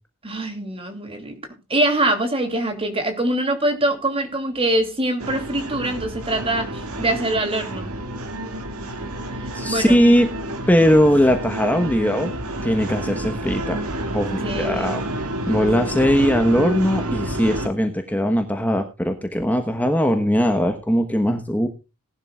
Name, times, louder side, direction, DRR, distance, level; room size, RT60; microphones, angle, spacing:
voice 1, 0.2-1.4 1.7-7.9 9.4-10.0 14.4-15.0 15.8-16.0, right 1 dB, 25° right, 6 dB, 2.8 m, -24 dB
sound 1, 5.2-17.7, right 1 dB, 75° right, 2.1 m, -29 dB
voice 2, 9.5-10.3 10.7-12.3 12.6-13.9 14.1-15.0 15.5-21.7, equal, 5° left, 5 dB, 1.2 m, -19 dB
19.0 x 11.5 x 2.4 m, 0.29 s
head